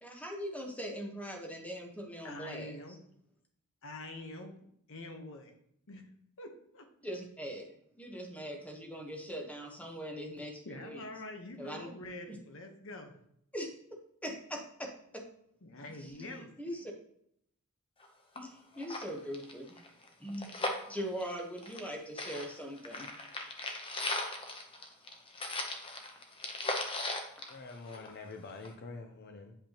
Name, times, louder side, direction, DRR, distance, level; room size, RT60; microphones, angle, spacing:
voice 1, 0.0-2.7 7.0-11.0 11.6-11.9 12.3-12.4 13.5-13.7 14.2-15.2 16.1-16.8 18.3-19.8 20.2-20.6 20.9-23.1, equal, 5° left, 1.1 m, -41 dB
voice 2, 2.2-3.0 3.8-4.5 4.9-5.5 5.9-6.1 6.4-6.9 10.6-13.2 15.6-16.8, left 2 dB, 65° left, 1.1 m, -45 dB
sound 1, 18.0-18.1 18.4-18.5 18.8-21.9 22.2-28.3 28.6-28.7, left 2 dB, 25° left, 0.9 m, -38 dB
voice 3, 27.5-29.5, left 3 dB, 50° left, 0.6 m, -46 dB
8.6 x 5.3 x 2.9 m
head